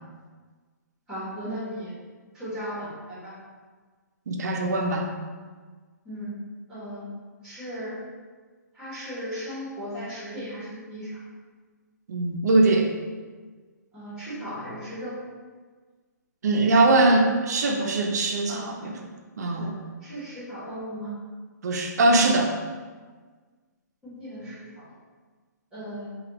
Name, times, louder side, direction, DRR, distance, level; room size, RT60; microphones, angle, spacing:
voice 1, 1.1-1.9 2.3-3.3 6.0-6.3 6.7-7.0 7.4-7.9 8.7-11.2 13.9-15.1 18.5-18.6 19.6-19.7 20.0-21.1 24.0-24.8 25.7-26.1, equal, 5° right, -10 dB, 1.2 m, -36 dB
voice 2, 4.3-5.1 12.1-12.9 16.4-18.9 19.4-19.7 21.6-22.5, right 2 dB, 60° right, 2 dB, 0.5 m, -21 dB
3.4 x 2.3 x 2.8 m, 1.5 s
hypercardioid pair, 165°, 10 cm